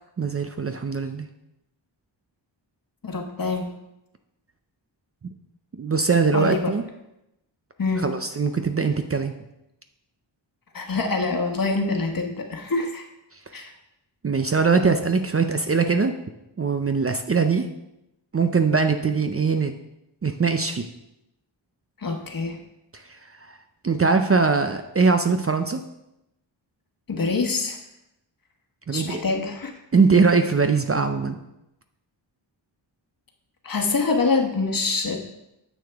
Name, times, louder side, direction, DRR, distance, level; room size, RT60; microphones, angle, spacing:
voice 1, 0.2-1.3 5.8-6.8 8.0-9.3 14.2-16.1 16.6-17.7 18.3-19.7 20.2-20.9 23.8-25.8 28.9-29.2 29.9-31.4, right 4 dB, 30° right, 7 dB, 0.5 m, -21 dB
voice 2, 3.0-3.7 6.3-6.7 7.8-8.0 10.7-13.0 13.5-13.7 22.0-22.6 27.1-27.8 28.9-29.8 33.6-35.2, left 3 dB, 50° left, 3 dB, 1.3 m, -25 dB
10.0 x 6.8 x 3.5 m, 0.87 s
wide cardioid pair, 110°, 45 cm